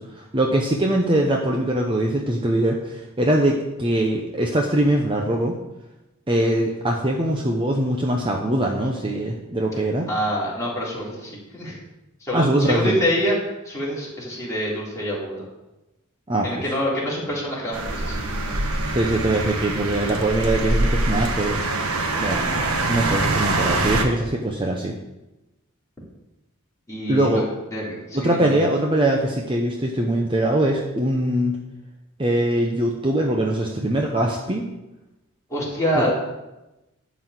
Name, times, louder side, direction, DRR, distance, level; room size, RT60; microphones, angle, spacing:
voice 1, 0.0-5.5 6.3-10.1 12.3-12.9 16.3-16.5 18.9-21.6 22.2-24.9 27.1-27.4 28.1-31.6 32.2-34.7 35.9-36.1, right 1 dB, 25° right, 0 dB, 0.8 m, -22 dB
voice 2, 10.1-11.8 12.2-13.3 13.6-15.4 16.4-18.7 26.9-27.4 27.7-28.6 35.5-36.1, equal, 15° left, -6 dB, 3.3 m, -26 dB
sound 1, 17.7-24.0, right 2 dB, 80° right, 1.3 m, -24 dB
11.5 x 4.2 x 7.9 m, 1.0 s
head